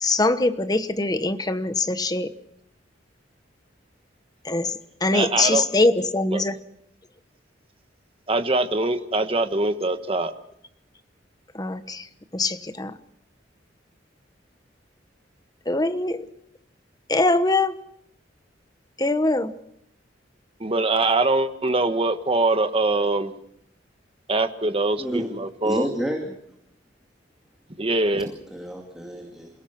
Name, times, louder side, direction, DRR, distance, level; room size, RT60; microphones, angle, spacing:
voice 1, 0.0-2.3 4.4-4.7 5.0-6.6 11.5-12.1 12.3-12.9 15.7-16.2 17.1-17.7 19.0-19.5, left 2 dB, 20° left, 10 dB, 1.1 m, -22 dB
voice 2, 5.1-5.7 6.3-6.4 8.3-10.3 20.6-23.3 24.3-25.9 27.8-28.3, right 2 dB, 30° right, 8 dB, 1.4 m, -23 dB
voice 3, 25.0-25.3 25.6-26.4 28.2-29.5, equal, 5° right, 1 dB, 2.5 m, -30 dB
27.5 x 17.0 x 6.0 m, 0.74 s
head